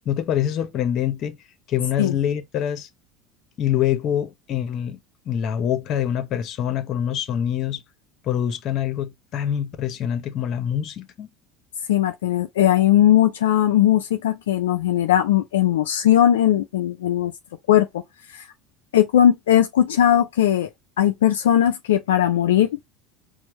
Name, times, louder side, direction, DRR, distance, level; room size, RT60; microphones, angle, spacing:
voice 1, 0.1-1.3 1.7-2.9 3.6-5.0 5.3-7.8 8.2-11.3, left 10 dB, 50° left, 0.7 m, -25 dB
voice 2, 11.9-17.3 17.7-17.9 18.3-18.4 18.9-20.7 21.0-22.7, left 11 dB, 80° left, 0.3 m, -18 dB
4.4 x 2.1 x 3.0 m
hypercardioid pair, 80°, 0 cm